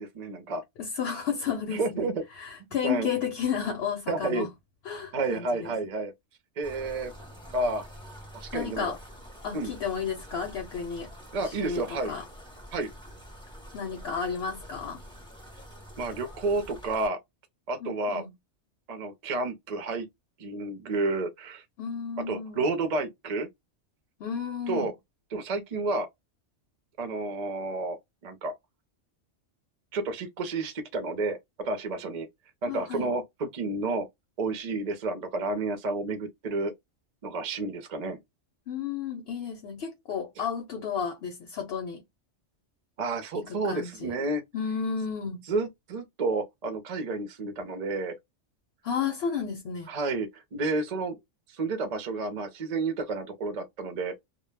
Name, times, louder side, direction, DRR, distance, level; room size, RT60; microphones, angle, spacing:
voice 1, 0.0-0.6 1.7-2.2 2.8-3.1 4.1-4.5 5.1-6.1 6.6-7.1 7.5-7.9 8.3-8.9 9.5-9.7 11.3-12.1 12.7-12.9 16.0-17.2 17.7-18.2 18.9-20.1 20.4-21.6 22.3-23.5 24.7-24.9 25.3-26.1 27.0-28.5 29.9-32.3 32.6-34.1 34.4-36.7 37.2-38.2 43.0-44.4 45.5-48.2 49.9-51.2 51.5-54.1, right 3 dB, 50° right, 0.5 m, -30 dB
voice 2, 0.8-4.5 4.8-5.8 8.5-9.0 9.4-11.1 11.4-12.3 13.7-15.0 17.8-18.3 21.8-22.7 24.2-24.9 32.7-33.1 38.7-42.0 43.3-44.2 44.5-45.5 48.8-49.9, left 7 dB, 65° left, 0.8 m, -32 dB
sound 1, 6.6-17.1, equal, 5° left, 0.5 m, -47 dB
2.2 x 2.0 x 3.2 m
omnidirectional pair, 1.2 m